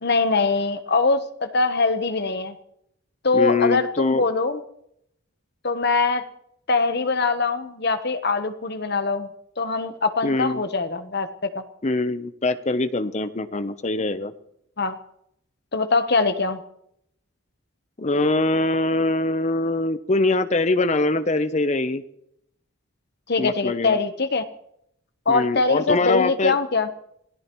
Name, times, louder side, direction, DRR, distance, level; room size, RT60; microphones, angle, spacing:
voice 1, 0.0-2.6 3.2-4.6 5.6-6.2 6.7-9.3 9.6-11.3 11.5-11.6 14.8-15.0 15.7-16.6 23.3-24.4 25.3-26.9, left 3 dB, 50° left, 10 dB, 1.0 m, -22 dB
voice 2, 3.3-4.2 10.2-10.6 11.8-14.3 18.0-22.0 23.4-24.0 25.3-26.6, left 2 dB, 30° left, 12 dB, 0.7 m, -23 dB
27.5 x 17.0 x 3.1 m, 0.75 s
head